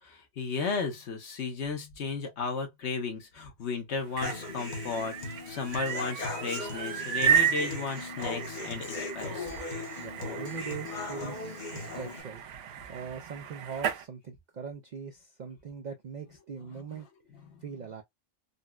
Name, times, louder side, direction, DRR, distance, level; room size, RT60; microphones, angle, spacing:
voice 1, 0.0-9.6 16.7-17.0 17.4-17.6, left 4 dB, 65° left, 1.2 m, -35 dB
sound 1, 3.9-14.0, right 9 dB, 85° right, 1.0 m, -33 dB
Human voice / Acoustic guitar, 4.2-12.2, left 3 dB, 45° left, 0.8 m, -38 dB
voice 2, 10.0-12.4 12.9-17.1 17.6-18.0, right 6 dB, 65° right, 0.4 m, -41 dB
4.0 x 2.1 x 2.3 m
omnidirectional pair, 1.3 m